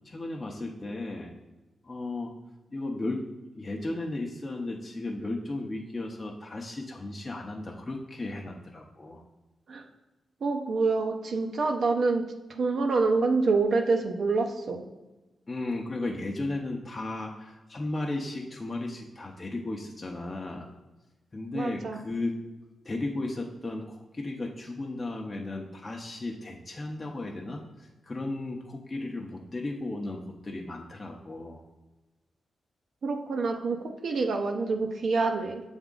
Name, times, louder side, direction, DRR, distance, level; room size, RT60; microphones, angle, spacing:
voice 1, 0.0-1.3 1.8-2.3 2.7-9.2 15.5-20.7 21.3-22.4 22.8-31.6, left 2 dB, 30° left, 0 dB, 0.6 m, -35 dB
voice 2, 10.4-12.2 12.5-14.8 21.5-22.0 33.0-33.8 34.0-35.6, right 3 dB, 65° right, 3 dB, 0.5 m, -26 dB
7.1 x 3.5 x 3.7 m, 1.1 s
cardioid pair, 95°, 0 cm